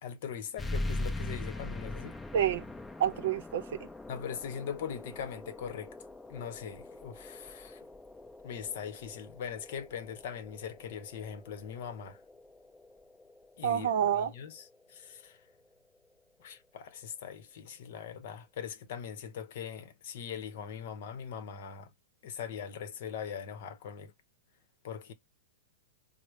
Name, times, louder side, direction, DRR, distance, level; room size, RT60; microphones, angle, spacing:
voice 1, 0.0-2.2 4.1-6.0 6.3-7.8 8.4-12.2 13.6-15.4 16.4-21.9 22.2-24.1 24.8-25.1, left 8 dB, 55° left, 0.8 m, -41 dB
sound 1, 0.6-15.7, left 2 dB, 5° left, 0.6 m, -42 dB
voice 2, 3.0-3.6 13.6-14.3, right 9 dB, 65° right, 0.6 m, -28 dB
4.9 x 2.0 x 3.1 m
supercardioid pair, 165°, 0 cm